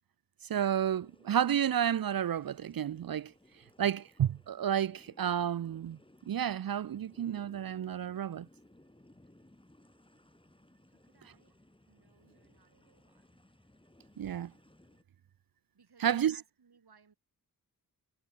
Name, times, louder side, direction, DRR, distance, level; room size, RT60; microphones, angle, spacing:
voice 1, 0.4-3.3 3.8-6.0 6.3-8.5 14.2-14.5 16.0-16.3, right 9 dB, 65° right, 0.5 m, -31 dB
sound 1, 0.6-15.0, left 1 dB, 15° left, 4.7 m, -63 dB
voice 2, 10.9-11.6 11.9-13.4 15.7-17.1, right 5 dB, 85° right, 7.5 m, -65 dB
wide cardioid pair, 100°, 38 cm